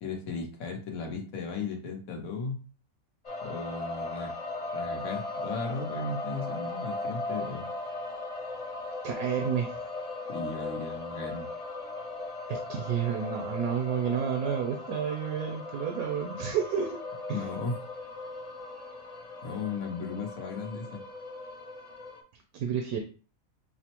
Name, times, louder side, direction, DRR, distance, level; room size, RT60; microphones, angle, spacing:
voice 1, 0.0-2.6 3.4-4.3 4.7-7.7 10.3-11.5 17.3-17.8 19.4-21.0, left 4 dB, 75° left, 3 dB, 1.3 m, -36 dB
sound 1, 3.2-22.2, left 2 dB, 45° left, 0.5 m, -38 dB
voice 2, 9.0-9.7 12.5-17.0 17.3-17.5 22.5-23.0, right 8 dB, 90° right, 4 dB, 1.1 m, -30 dB
5.9 x 2.1 x 2.9 m, 0.37 s
omnidirectional pair, 1.5 m